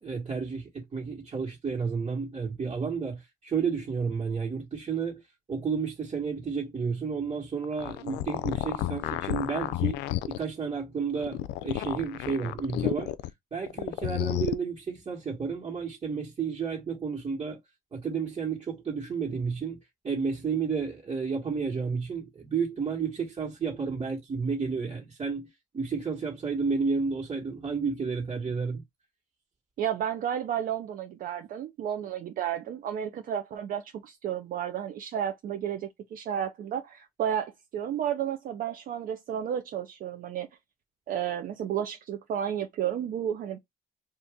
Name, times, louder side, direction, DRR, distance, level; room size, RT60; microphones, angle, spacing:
voice 1, 0.0-5.2 5.5-10.0 10.3-13.1 13.5-17.6 17.9-19.8 20.0-25.5 25.7-28.8, right 5 dB, 35° right, 1.6 m, -31 dB
sound 1, 7.6-10.4 11.1-13.3 13.7-14.5, left 15 dB, 90° left, 0.4 m, -31 dB
voice 2, 29.8-40.5 41.1-43.6, right 9 dB, 55° right, 0.6 m, -32 dB
2.7 x 2.6 x 3.5 m
cardioid pair, 110°, 17 cm